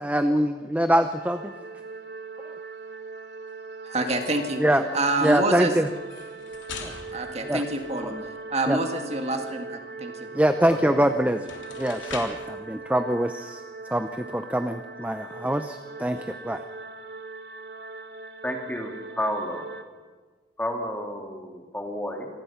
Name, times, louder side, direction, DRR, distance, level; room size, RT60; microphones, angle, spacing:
voice 1, 0.0-1.5 4.6-5.9 6.8-6.9 7.5-7.6 8.1-8.2 8.7-8.8 10.3-11.4 11.8-13.6 13.9-16.6, right 1 dB, 10° right, 9 dB, 0.6 m, -24 dB
sound 1, 1.1-19.8, right 3 dB, 60° right, 1.5 m, -40 dB
voice 2, 3.8-4.6 4.9-5.7 7.1-10.3, right 2 dB, 35° right, 5 dB, 1.8 m, -27 dB
sound 2, 6.0-8.4 10.8-10.9 11.3-12.5, left 5 dB, 85° left, 3.4 m, -41 dB
voice 3, 10.7-11.0 18.4-19.6 20.6-22.3, equal, 10° left, 2 dB, 2.6 m, -31 dB
26.5 x 19.5 x 5.8 m, 1.4 s
head